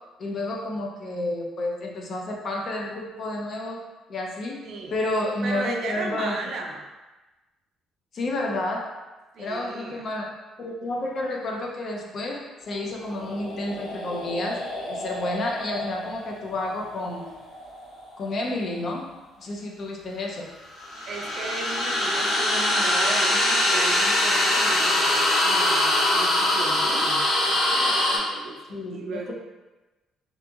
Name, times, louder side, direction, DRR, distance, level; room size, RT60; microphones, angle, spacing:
voice 1, 0.2-3.8 4.1-4.6 4.9-6.4 8.1-8.9 9.4-17.3 18.2-19.1 19.4-20.5 28.7-29.3, left 1 dB, 45° left, 0 dB, 0.4 m, -30 dB
voice 2, 4.6-5.0 5.4-6.9 9.3-10.0 21.1-29.3, right 3 dB, 55° right, 1 dB, 0.4 m, -35 dB
sound 1, 13.0-18.2 20.7-28.2, left 1 dB, 75° left, 0.8 m, -24 dB
2.7 x 2.6 x 2.3 m, 1.1 s
cardioid pair, 140°, 0 cm